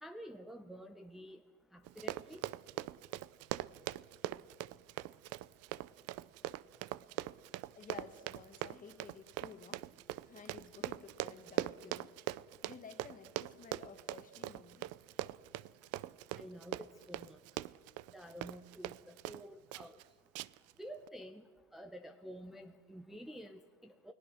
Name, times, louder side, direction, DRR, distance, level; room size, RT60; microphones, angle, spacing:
voice 1, 0.0-1.4 1.7-2.4 16.3-17.4 18.1-20.0 20.8-21.4 21.7-24.1, equal, ahead, 4 dB, 0.7 m, -50 dB
Run, 1.8-19.4 19.7-20.0 20.3-20.7 21.1-21.2, right 16 dB, 55° right, 0.6 m, -41 dB
voice 2, 7.8-9.9 10.2-12.2 12.6-15.0, left 6 dB, 25° left, 8 dB, 1.8 m, -53 dB
29.0 x 18.5 x 6.2 m, 1.5 s
cardioid pair, 145°, 30 cm